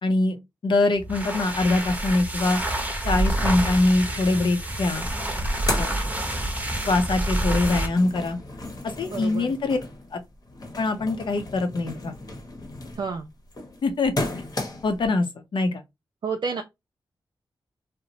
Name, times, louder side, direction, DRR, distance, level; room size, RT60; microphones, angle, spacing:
voice 1, 0.0-2.6 3.0-5.0 5.8-5.9 6.9-8.4 9.0-9.8 10.1-10.2 10.8-12.1 13.8-14.1 14.8-15.3 15.5-15.8, left 2 dB, 70° left, 0.6 m, -23 dB
sound 1, 1.0-8.0, right 1 dB, 15° right, 0.8 m, -27 dB
sound 2, 4.7-4.8 5.0-6.8 7.2-15.1, left 2 dB, 45° left, 0.9 m, -35 dB
voice 2, 9.1-9.5 13.0-13.3 16.2-16.6, right 5 dB, 60° right, 0.4 m, -29 dB
2.8 x 2.0 x 2.7 m
cardioid pair, 55°, 9 cm